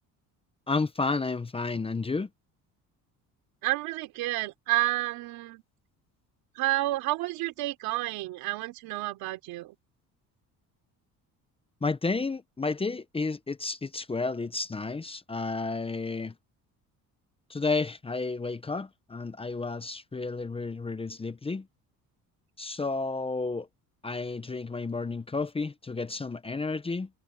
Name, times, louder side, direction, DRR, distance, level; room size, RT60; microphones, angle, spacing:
voice 1, 0.7-2.3 11.8-16.3 17.5-21.7 22.6-23.7 24.0-27.1, left 3 dB, 15° left, 0.8 m, -31 dB
voice 2, 3.6-5.6 6.6-9.7, right 18 dB, 85° right, 3.3 m, -30 dB
cardioid pair, 115°, 35 cm